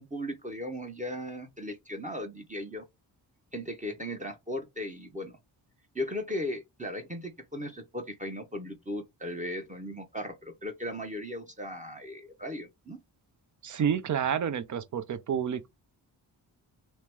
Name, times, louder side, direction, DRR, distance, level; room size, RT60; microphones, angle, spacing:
voice 1, 0.0-2.8 3.5-5.4 5.9-13.0, left 1 dB, 15° right, 0.8 m, -37 dB
voice 2, 13.6-15.7, right 8 dB, 40° right, 0.6 m, -29 dB
2.9 x 2.0 x 3.4 m
cardioid pair, 45°, 45 cm